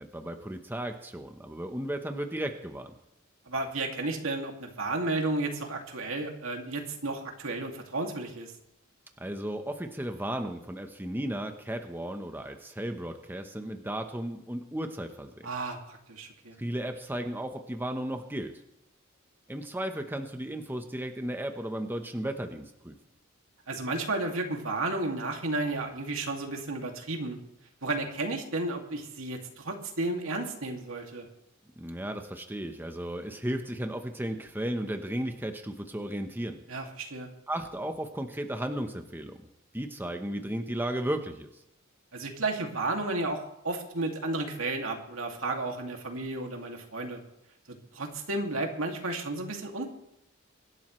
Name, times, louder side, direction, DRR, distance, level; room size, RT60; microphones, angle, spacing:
voice 1, 0.0-2.9 9.2-15.3 16.6-18.6 19.5-22.9 31.8-36.6 37.5-39.5 39.7-41.5, right 1 dB, 10° right, 5 dB, 1.0 m, -34 dB
voice 2, 3.5-8.5 15.4-16.6 23.7-27.4 27.8-31.3 36.7-37.3 42.1-47.2 47.9-49.9, right 2 dB, 85° right, 2 dB, 2.4 m, -32 dB
24.5 x 12.0 x 3.2 m, 0.81 s
head